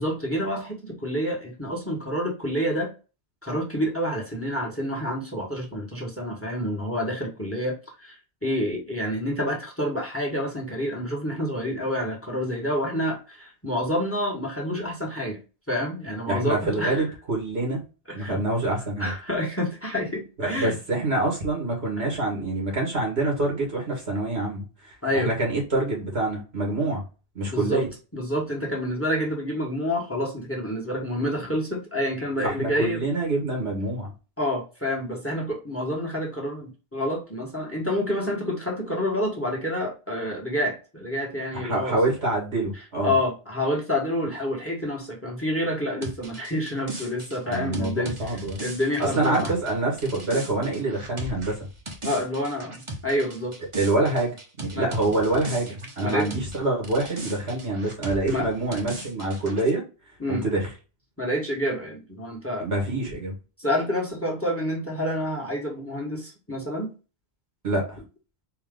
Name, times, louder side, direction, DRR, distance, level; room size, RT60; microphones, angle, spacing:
voice 1, 0.0-2.9 3.4-15.4 15.7-17.0 18.1-18.4 19.0-20.8 22.0-22.1 25.0-25.3 27.5-27.8 28.1-33.0 34.4-42.0 43.0-49.5 52.0-53.5 54.7-54.9 56.0-56.3 58.3-58.5 60.2-60.4 61.2-62.7 63.6-66.9, equal, 15° left, 0 dB, 1.4 m, -28 dB
voice 2, 16.3-17.8 18.1-19.1 20.4-27.0 27.4-27.9 32.4-34.1 41.5-43.1 47.5-48.6 49.0-51.7 53.7-59.8 60.3-60.7 62.6-63.3 67.6-68.0, right 2 dB, 80° right, -1 dB, 2.1 m, -26 dB
sound 1, 46.0-56.6 56.8-59.7, right 1 dB, 30° right, 1.1 m, -38 dB
4.6 x 2.9 x 3.7 m, 0.33 s
omnidirectional pair, 1.1 m